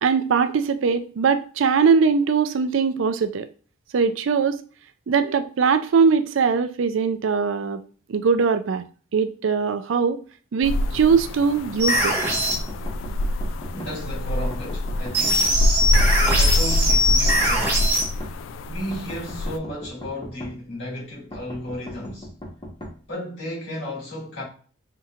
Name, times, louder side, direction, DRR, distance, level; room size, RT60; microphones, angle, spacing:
voice 1, 0.0-3.5 3.9-4.6 5.1-7.8 8.1-8.8 9.1-10.2 10.5-12.2, right 5 dB, 75° right, 0.4 m, -21 dB
sound 1, 10.6-19.6, left 1 dB, 75° left, 0.3 m, -25 dB
sound 2, 11.8-12.6 15.1-18.0, equal, 10° right, 1.3 m, -21 dB
sound 3, 12.3-13.9 14.5-16.1 16.7-18.3 18.9-20.5 21.3-22.9, equal, 25° left, 1.0 m, -38 dB
voice 2, 13.7-15.6 16.4-17.8 18.7-22.3 23.1-24.4, left 1 dB, 60° left, 2.2 m, -34 dB
5.6 x 2.8 x 2.4 m
head